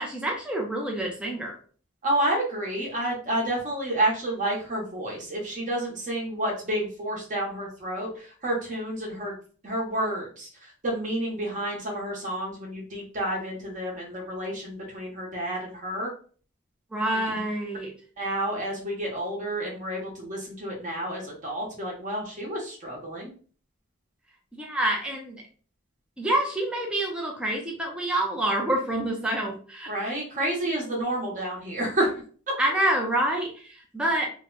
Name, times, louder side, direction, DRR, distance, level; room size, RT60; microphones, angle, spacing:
voice 1, 0.0-1.5 16.9-17.9 24.5-25.4 26.2-29.9 32.6-34.3, right 1 dB, 5° right, -1 dB, 0.5 m, -27 dB
voice 2, 2.0-9.3 9.6-16.1 17.1-17.2 18.2-23.3 29.9-32.1, right 1 dB, 40° right, -2 dB, 0.9 m, -30 dB
2.8 x 2.2 x 3.7 m, 0.42 s
head